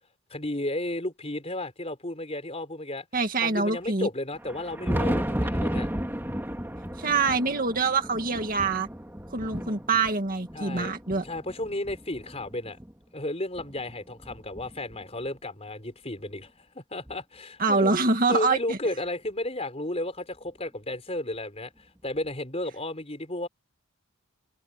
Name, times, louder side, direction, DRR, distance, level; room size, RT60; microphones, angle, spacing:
voice 1, 0.3-3.1 3.4-5.9 9.3-9.7 10.5-10.9 11.2-12.8 13.1-18.0 18.3-23.5, left 1 dB, 25° left, 4.5 m, -33 dB
voice 2, 3.1-4.1 7.0-8.9 9.3-11.2 17.6-18.8, right 4 dB, 40° right, 2.1 m, -25 dB
Thunder, 4.3-12.9 13.6-15.3 16.4-16.5 17.1-17.2 19.0-19.1 20.5-20.6 22.2-22.3, equal, 10° right, 2.2 m, -33 dB
head